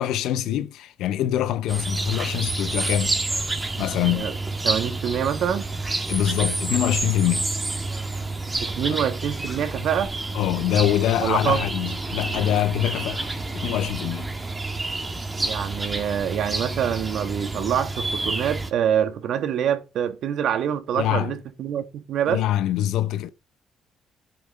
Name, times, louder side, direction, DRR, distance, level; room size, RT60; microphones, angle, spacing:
voice 1, 0.0-3.1 3.8-4.3 6.1-7.5 10.3-13.3 13.5-14.3 21.0-21.3 22.3-23.3, left 12 dB, 85° left, 0.7 m, -24 dB
sound 1, 1.7-18.7, right 2 dB, 20° right, 2.0 m, -29 dB
voice 2, 4.0-4.4 4.6-5.7 8.6-10.1 11.2-11.6 15.4-22.4, right 9 dB, 70° right, 1.6 m, -25 dB
8.2 x 6.9 x 7.6 m
cardioid pair, 85°, 0 cm